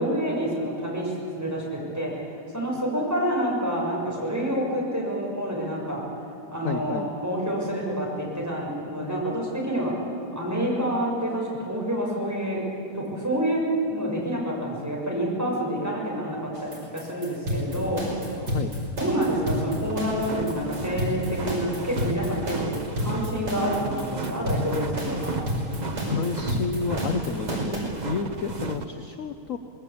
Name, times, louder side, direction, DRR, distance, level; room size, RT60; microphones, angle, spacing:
voice 1, 0.0-6.1 6.5-10.0 10.3-12.6 12.9-18.1 18.9-22.7 23.0-25.4, equal, 5° right, -4 dB, 6.4 m, -28 dB
voice 2, 6.6-7.1 18.4-18.7 26.1-29.6, left 5 dB, 60° left, 7 dB, 0.9 m, -30 dB
sound 1, 16.5-27.8, equal, 80° right, 7.0 m, -30 dB
sound 2, 19.8-28.9, right 3 dB, 40° right, 0.6 m, -34 dB
26.5 x 20.0 x 8.6 m, 2.6 s
omnidirectional pair, 2.4 m